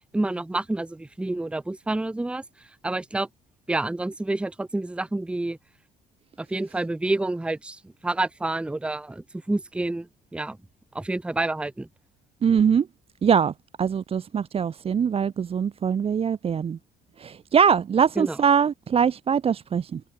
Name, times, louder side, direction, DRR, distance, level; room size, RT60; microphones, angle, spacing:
voice 1, 0.1-2.4 2.8-3.3 3.7-5.6 6.5-10.1 10.3-10.6 10.9-11.9 18.2-18.4, right 2 dB, 5° right, 0.7 m, -28 dB
voice 2, 12.4-12.9 13.2-13.5 13.8-16.8 17.2-20.0, right 7 dB, 35° right, 0.8 m, -22 dB
open air
cardioid pair, 110°, 17 cm